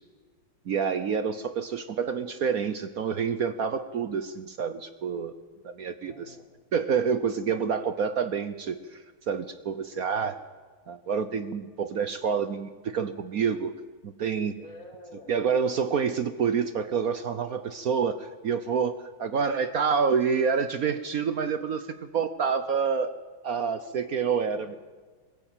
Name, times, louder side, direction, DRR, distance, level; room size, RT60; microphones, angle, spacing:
voice 1, 0.7-5.3 5.6-6.4 6.7-10.4 10.9-13.7 14.0-14.5 15.3-18.9 19.2-23.1 23.4-24.7, right 6 dB, 60° right, 11 dB, 0.9 m, -28 dB
voice 2, 6.0-6.5 8.2-8.3 14.6-15.5 19.2-19.8 24.4-24.8, left 1 dB, 40° left, -1 dB, 4.1 m, -49 dB
22.0 x 14.5 x 9.0 m, 1.4 s
omnidirectional pair, 2.4 m